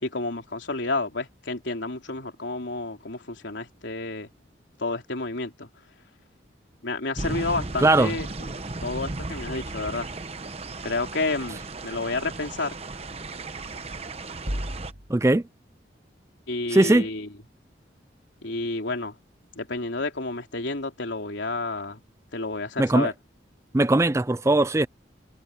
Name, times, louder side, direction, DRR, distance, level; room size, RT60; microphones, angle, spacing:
voice 1, 0.0-4.3 4.8-5.7 6.8-8.3 8.8-10.1 10.8-12.8 16.5-17.3 18.4-19.1 19.5-22.0 22.3-23.1, left 3 dB, 80° left, 3.4 m, -30 dB
sound 1, 7.2-14.9, right 2 dB, 35° right, 1.0 m, -35 dB
voice 2, 7.8-8.1 15.1-15.4 16.7-17.1 22.8-23.1 23.7-24.9, right 2 dB, 15° right, 0.4 m, -19 dB
sound 2, 14.5-15.4, equal, 55° right, 6.5 m, -32 dB
head